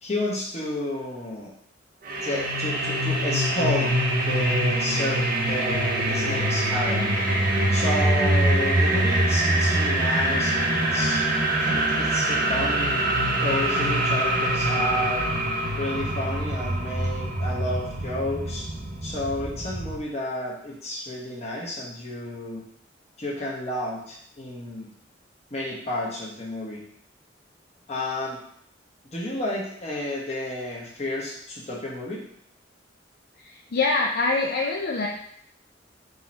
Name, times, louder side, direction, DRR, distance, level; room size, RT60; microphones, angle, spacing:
voice 1, 0.0-1.5 2.2-3.9 4.3-7.1 7.7-11.3 11.6-12.9 13.4-15.3 15.8-18.6 19.0-22.6 23.2-24.9 25.5-26.8 27.9-28.4 29.1-32.2, left 1 dB, 35° left, -4 dB, 1.0 m, -31 dB
sound 1, 2.0-20.0, right 1 dB, 50° right, 0.6 m, -24 dB
voice 2, 33.4-35.1, left 3 dB, 55° left, -1 dB, 0.4 m, -25 dB
3.8 x 2.8 x 4.2 m, 0.68 s
head